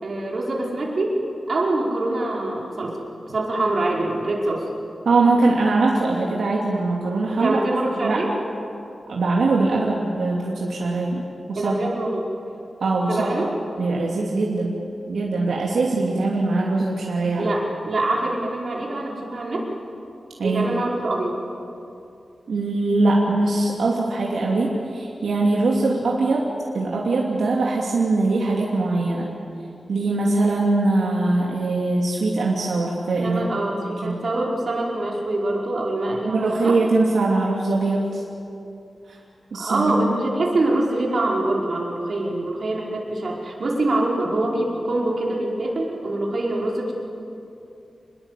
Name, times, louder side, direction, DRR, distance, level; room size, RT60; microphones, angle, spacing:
voice 1, 0.0-1.2 1.5-3.0 3.3-4.6 7.3-8.3 11.5-12.3 13.1-13.5 17.4-19.7 20.4-21.4 33.2-36.8 39.5-46.9, right 2 dB, 50° right, -2 dB, 5.2 m, -24 dB
voice 2, 5.0-7.6 8.0-8.2 9.1-11.7 12.8-13.3 13.8-14.7 15.1-17.5 20.4-20.7 22.5-26.5 26.7-29.3 29.9-33.4 34.0-34.1 36.2-38.2 39.1-39.2 39.5-40.0, right 3 dB, 90° right, -3 dB, 3.0 m, -22 dB
27.5 x 21.0 x 8.5 m, 2.7 s
wide cardioid pair, 160°, 0 cm